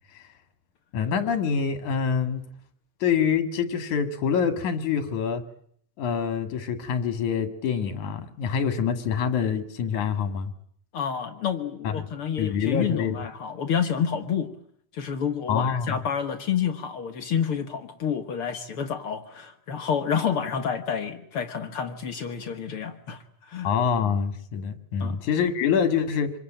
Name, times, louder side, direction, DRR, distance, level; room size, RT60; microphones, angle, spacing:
voice 1, 0.9-2.4 3.0-5.4 6.0-10.5 11.8-12.1 12.4-13.2 15.5-16.0 23.6-26.3, left 7 dB, 70° left, 9 dB, 3.2 m, -26 dB
voice 2, 10.9-14.5 14.9-23.7 25.0-25.2, left 7 dB, 55° left, 7 dB, 1.9 m, -29 dB
26.0 x 21.5 x 9.0 m, 0.64 s
omnidirectional pair, 3.6 m